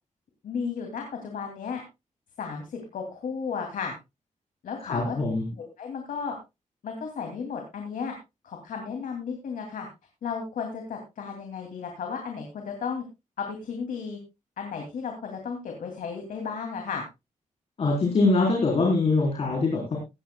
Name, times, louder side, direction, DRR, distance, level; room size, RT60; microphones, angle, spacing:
voice 1, 0.4-1.8 2.4-3.9 4.6-5.2 5.8-6.3 6.8-8.1 8.4-9.9 10.2-13.0 13.4-14.2 14.6-17.0, left 6 dB, 90° left, 3 dB, 2.6 m, -34 dB
voice 2, 4.8-5.4 17.8-20.0, left 3 dB, 50° left, 0 dB, 3.8 m, -23 dB
17.5 x 14.5 x 2.2 m, 0.25 s
wide cardioid pair, 150°, 13 cm